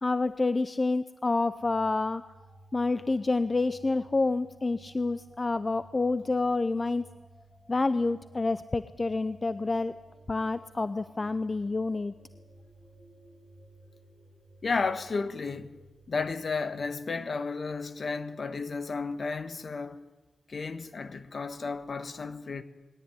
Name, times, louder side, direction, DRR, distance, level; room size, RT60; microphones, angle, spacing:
voice 1, 0.0-2.2 2.7-7.1 7.7-9.9 10.3-12.2, left 3 dB, 30° left, 0.6 m, -28 dB
sound 1, 1.6-17.9, right 1 dB, ahead, 5.4 m, -56 dB
voice 2, 14.6-15.8 16.1-20.0 20.5-22.6, left 4 dB, 50° left, 1.5 m, -33 dB
20.5 x 18.0 x 9.8 m
wide cardioid pair, 110°, 0 cm